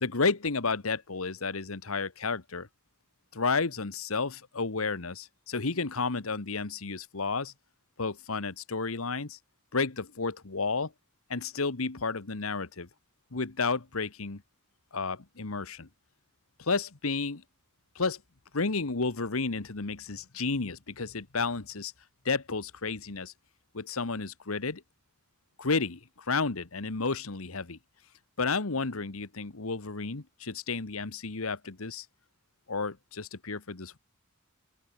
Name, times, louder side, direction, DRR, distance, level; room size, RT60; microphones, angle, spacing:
voice 1, 0.0-2.7 3.3-7.5 8.0-9.4 9.7-10.9 11.3-12.9 13.3-14.4 14.9-15.9 16.6-17.4 17.9-18.2 18.5-21.9 22.2-23.3 23.7-24.8 25.6-26.0 26.3-27.8 28.4-32.0 32.7-34.0, left 4 dB, 80° left, 1.4 m, -31 dB
open air
head